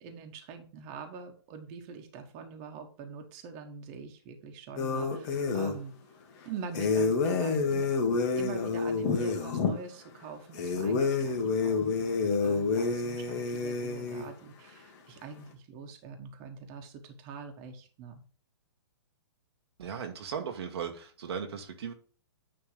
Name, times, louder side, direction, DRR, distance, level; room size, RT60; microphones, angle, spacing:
voice 1, 0.0-5.9 6.4-7.9 8.3-18.2, right 5 dB, 35° right, 4 dB, 1.5 m, -44 dB
sound 1, 4.8-5.8 6.7-9.7 10.5-14.3, left 4 dB, 40° left, 1.5 m, -28 dB
voice 2, 19.8-21.9, right 7 dB, 65° right, 3 dB, 1.3 m, -37 dB
9.5 x 3.4 x 5.1 m, 0.40 s
hypercardioid pair, 140°, 15 cm